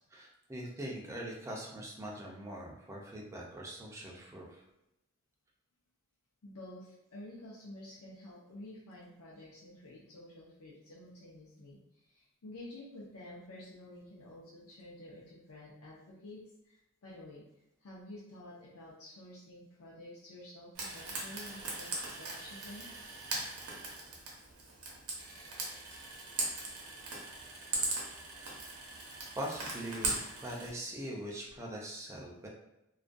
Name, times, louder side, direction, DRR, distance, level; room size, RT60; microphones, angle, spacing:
voice 1, 0.1-4.6 29.4-32.5, right 1 dB, 15° right, -2 dB, 0.4 m, -42 dB
voice 2, 6.4-11.8 12.1-16.4 16.6-16.7 17.0-17.4 17.8-22.9, left 1 dB, 75° left, -7 dB, 0.5 m, -50 dB
Frying (food), 20.7-30.7, right 2 dB, 85° right, 0.7 m, -39 dB
2.3 x 2.2 x 2.5 m, 0.88 s
head